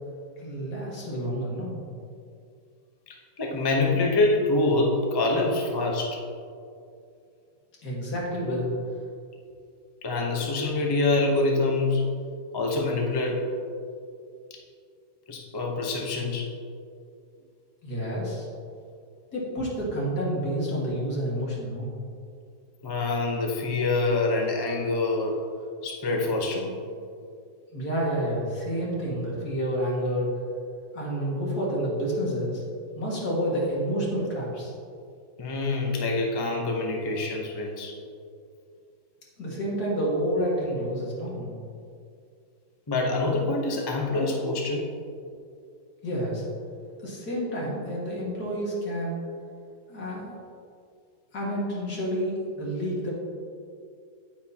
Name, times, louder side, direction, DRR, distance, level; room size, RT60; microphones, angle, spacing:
voice 1, 0.4-1.8 7.8-8.7 17.8-18.5 19.3-22.0 27.7-30.3 30.9-32.6 32.9-34.7 39.4-41.6 46.0-46.4 47.0-49.2 49.9-50.3 51.3-53.1, equal, 65° left, -4 dB, 2.4 m, -29 dB
voice 2, 3.1-6.2 10.0-12.1 12.5-13.5 15.3-16.5 22.8-25.4 25.8-26.8 35.4-37.9 42.9-44.9, left 2 dB, 25° left, 0 dB, 0.5 m, -25 dB
9.2 x 8.9 x 2.9 m, 2.4 s
omnidirectional pair, 1.8 m